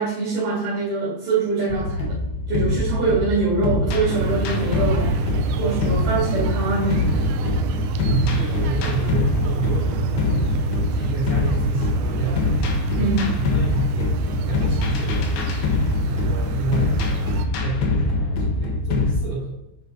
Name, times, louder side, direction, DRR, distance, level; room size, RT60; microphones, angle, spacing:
voice 1, 0.0-2.2 2.5-5.3 5.6-7.3 12.9-13.4, right 4 dB, 55° right, -6 dB, 3.3 m, -24 dB
sound 1, 1.7-19.1, left 2 dB, 80° left, 3.5 m, -23 dB
sound 2, 4.1-17.5, right 9 dB, 80° right, 2.5 m, -30 dB
voice 2, 8.0-10.6 10.9-12.4 12.9-13.1 13.3-15.6 16.1-17.2 17.6-19.6, right 3 dB, 35° right, -8 dB, 3.3 m, -29 dB
9.3 x 5.5 x 4.0 m, 0.85 s
omnidirectional pair, 5.0 m